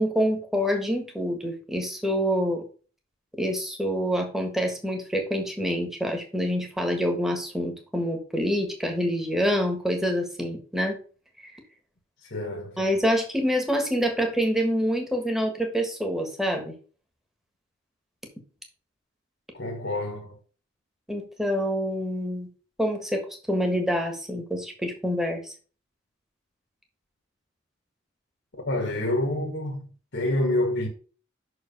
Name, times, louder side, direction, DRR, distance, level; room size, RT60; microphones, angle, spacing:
voice 1, 0.0-2.6 3.4-11.0 12.8-16.7 21.1-22.5 22.8-25.5, equal, ahead, 1.5 m, -26 dB
voice 2, 12.2-12.8 19.5-20.4 28.5-30.9, left 1 dB, 60° left, 1.5 m, -28 dB
6.1 x 4.9 x 5.3 m
head